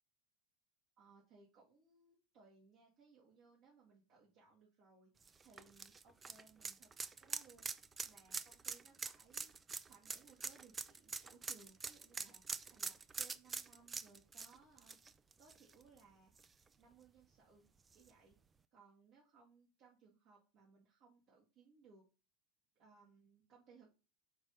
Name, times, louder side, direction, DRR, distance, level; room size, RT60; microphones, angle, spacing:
voice 1, 1.0-5.1 5.4-7.7 8.0-15.0 15.4-16.3 16.8-17.6 17.9-18.3 18.7-22.1 22.8-23.9, right 4 dB, 50° right, -5 dB, 2.0 m, -65 dB
sound 1, 5.2-16.0 16.4-16.5 17.9-18.0, right 5 dB, 20° right, 0.4 m, -45 dB
4.6 x 4.2 x 5.5 m, 0.32 s
figure-of-eight pair, 80°, 0 cm